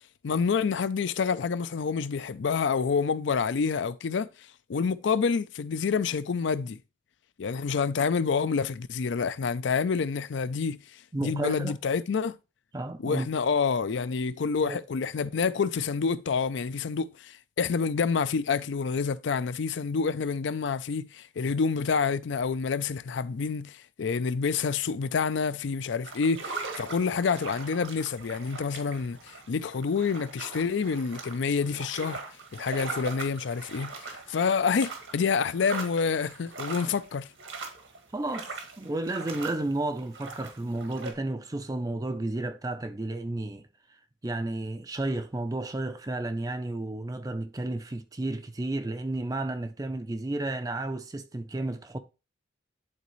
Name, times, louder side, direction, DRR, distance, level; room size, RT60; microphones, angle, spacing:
voice 1, 0.2-4.3 4.7-6.8 7.4-10.8 11.2-12.4 13.0-32.2 32.5-37.3, left 5 dB, 70° left, 0.4 m, -28 dB
voice 2, 11.1-11.8 12.7-13.3 14.6-14.8 38.1-52.0, right 2 dB, 20° right, 0.4 m, -32 dB
sound 1, 26.0-41.1, right 3 dB, 85° right, 1.8 m, -41 dB
10.5 x 4.1 x 3.1 m
head